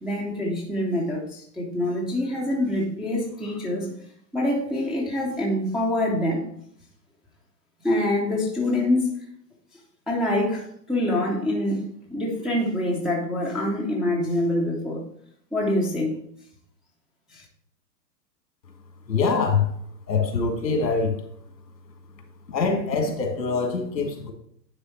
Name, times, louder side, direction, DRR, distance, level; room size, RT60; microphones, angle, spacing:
voice 1, 0.0-3.9 4.3-6.5 7.8-9.2 10.1-15.0 15.5-16.2 17.3-17.4, left 1 dB, ahead, -4 dB, 0.5 m, -25 dB
voice 2, 19.1-19.7 20.1-21.2 22.5-24.3, left 4 dB, 80° left, 4 dB, 1.9 m, -24 dB
9.8 x 3.4 x 4.5 m, 0.67 s
hypercardioid pair, 125°, 50 cm